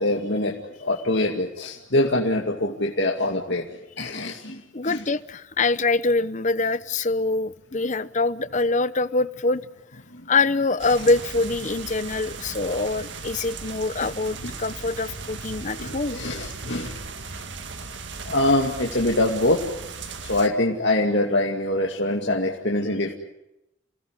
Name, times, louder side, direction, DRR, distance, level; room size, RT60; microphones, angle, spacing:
voice 1, 0.0-3.7 4.0-5.0 10.1-10.3 14.0-14.1 14.4-14.5 15.8-17.0 18.3-19.6 20.2-23.1, left 1 dB, 60° left, 0 dB, 2.4 m, -24 dB
voice 2, 4.7-9.6 10.3-16.2 16.7-16.8, left 3 dB, 35° left, 15 dB, 0.9 m, -24 dB
sound 1, 10.8-20.5, right 4 dB, 60° right, 2.0 m, -37 dB
29.0 x 18.5 x 9.8 m, 0.89 s
head